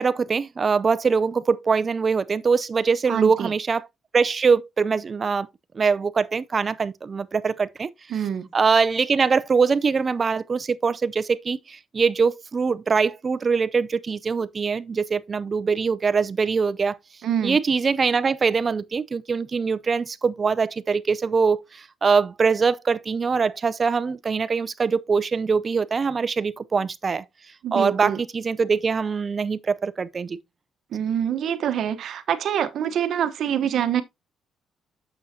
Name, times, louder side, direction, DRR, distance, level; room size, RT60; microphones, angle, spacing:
voice 1, 0.0-3.9 4.1-5.5 5.7-7.9 8.5-17.0 17.4-27.2 27.7-30.4, right 5 dB, 35° right, 0.6 m, -23 dB
voice 2, 3.1-3.5 8.1-8.5 17.2-17.6 27.6-28.2 30.9-34.0, right 9 dB, 70° right, 1.0 m, -25 dB
9.1 x 7.0 x 2.8 m
cardioid pair, 90°, 0 cm